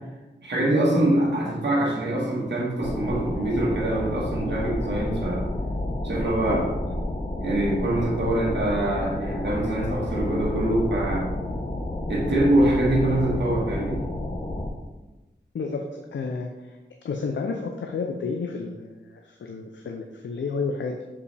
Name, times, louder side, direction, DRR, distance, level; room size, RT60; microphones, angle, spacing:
voice 1, 0.4-5.4 6.0-6.6 7.4-11.3 12.1-14.0, right 1 dB, 70° right, -4 dB, 1.6 m, -24 dB
sound 1, 2.8-14.7, left 1 dB, 30° left, 0.9 m, -30 dB
voice 2, 15.5-16.8 17.0-21.0, left 4 dB, 85° left, 3 dB, 0.6 m, -31 dB
6.9 x 4.9 x 3.4 m, 1.1 s
cardioid pair, 50°, 19 cm